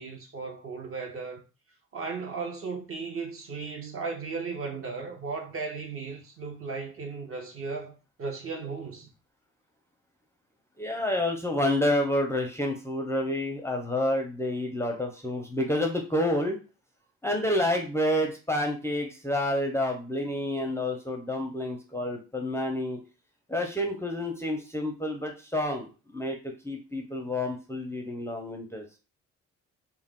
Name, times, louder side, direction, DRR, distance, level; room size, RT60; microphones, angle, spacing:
voice 1, 0.0-1.4 1.9-7.9 8.2-9.1, right 4 dB, 45° right, 0.8 m, -36 dB
voice 2, 10.8-16.6 17.2-23.0 23.5-28.8, left 1 dB, 10° left, 0.5 m, -29 dB
2.3 x 2.1 x 3.5 m
cardioid pair, 90°, 30 cm